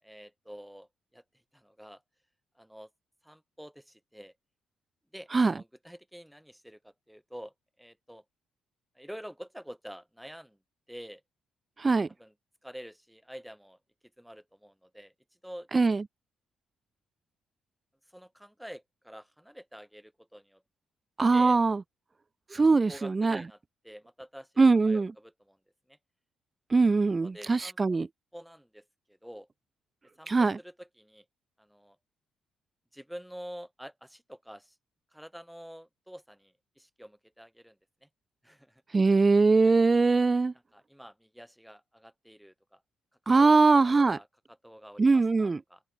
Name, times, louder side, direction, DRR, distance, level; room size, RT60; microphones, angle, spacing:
voice 1, 0.0-1.2 1.5-2.0 2.5-2.9 3.2-4.3 5.1-8.2 8.9-10.6 10.9-11.2 12.2-12.3 12.6-13.8 14.2-15.1 15.4-15.7 18.1-20.6 21.3-21.6 22.9-24.5 24.9-25.6 25.9-26.0 27.2-27.8 28.3-29.5 30.2-31.2 31.6-32.0 32.9-34.8 35.1-38.1 38.4-38.8 39.6-39.8 40.7-42.8 43.4-45.8, equal, ahead, 4.9 m, -48 dB
voice 2, 21.2-21.8 22.5-23.4 24.6-25.1 26.7-28.1 30.3-30.6 38.9-40.5 43.3-44.2 45.0-45.6, right 3 dB, 25° right, 0.4 m, -22 dB
open air
cardioid pair, 90°, 0 cm